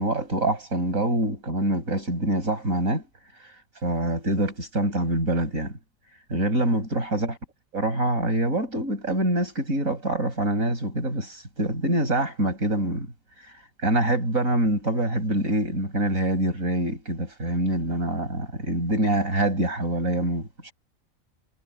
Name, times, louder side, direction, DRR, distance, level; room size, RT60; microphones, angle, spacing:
voice 1, 0.0-3.1 3.8-5.8 6.3-7.4 7.7-13.1 13.8-20.7, right 1 dB, 85° right, 7.4 m, -25 dB
omnidirectional pair, 1.4 m